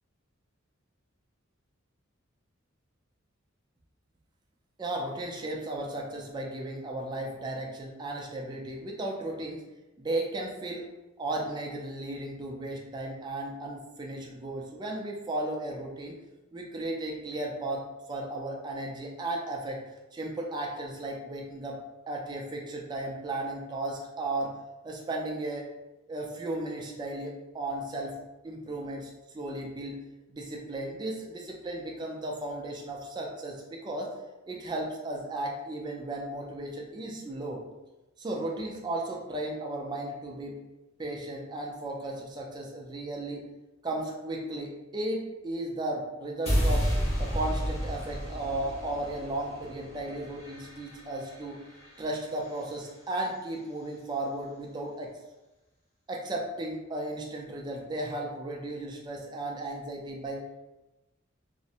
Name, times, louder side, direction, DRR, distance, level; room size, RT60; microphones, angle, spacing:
voice 1, 4.8-9.6 10.0-10.9 11.2-16.2 16.5-19.8 20.1-21.8 22.1-24.6 24.8-25.6 26.1-28.2 28.4-30.0 30.3-34.1 34.5-37.6 38.2-40.6 41.0-43.5 43.8-46.9 47.2-51.6 52.0-55.1 56.1-60.5, right 1 dB, 20° right, -1 dB, 0.3 m, -35 dB
sound 1, 46.5-52.6, equal, 30° left, 0.8 m, -32 dB
2.5 x 2.0 x 2.7 m, 1.0 s
head